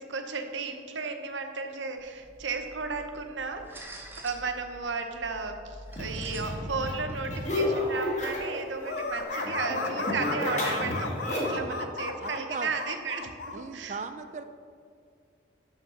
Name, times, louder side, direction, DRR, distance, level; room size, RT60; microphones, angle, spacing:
voice 1, 0.0-3.9 4.2-14.0, right 4 dB, 90° right, 6 dB, 0.8 m, -34 dB
sound 1, 2.0-9.2, right 1 dB, 10° right, 0.7 m, -47 dB
sound 2, 5.9-8.6 8.9-11.7, left 1 dB, 40° left, 1.7 m, -31 dB
sound 3, 8.8-13.6, left 4 dB, 60° left, 0.5 m, -35 dB
voice 2, 11.5-12.7 13.5-14.4, right 4 dB, 40° right, 10 dB, 0.4 m, -39 dB
6.4 x 6.2 x 6.2 m, 2.2 s
head